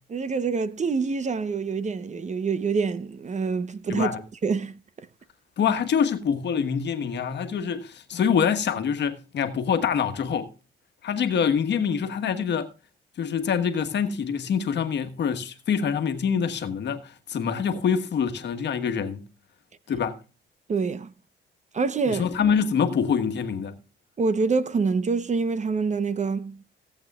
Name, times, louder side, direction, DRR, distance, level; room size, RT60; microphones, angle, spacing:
voice 1, 0.1-4.1 4.4-4.7 20.7-21.1 21.7-22.3 24.2-26.6, right 4 dB, 35° right, 0.9 m, -26 dB
voice 2, 3.9-4.2 5.6-10.5 11.0-12.7 13.2-19.2 19.9-20.2 22.1-23.7, left 7 dB, 60° left, 1.4 m, -25 dB
17.0 x 8.1 x 2.4 m
cardioid pair, 90°, 20 cm